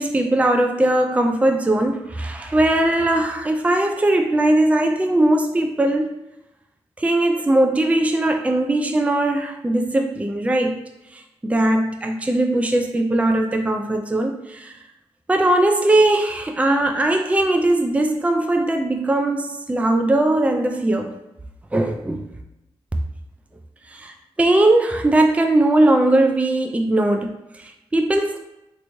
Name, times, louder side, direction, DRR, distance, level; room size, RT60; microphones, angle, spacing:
voice 1, 0.0-6.1 7.0-10.8 11.1-14.7 15.3-21.2 21.7-22.3 23.9-28.4, right 1 dB, 15° right, 4 dB, 0.4 m, -19 dB
3.3 x 2.9 x 2.7 m, 0.93 s
cardioid pair, 55°, 10 cm